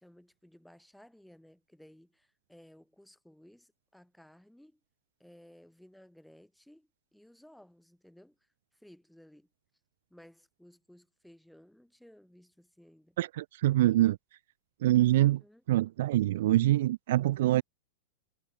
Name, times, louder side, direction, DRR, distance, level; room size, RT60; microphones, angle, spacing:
voice 1, 0.0-4.8 5.2-9.5 10.1-13.2 15.4-15.9, equal, ahead, 6.4 m, -58 dB
voice 2, 13.2-14.2 14.8-15.4 15.7-17.6, right 15 dB, 55° right, 0.4 m, -25 dB
supercardioid pair, 175°, 0 cm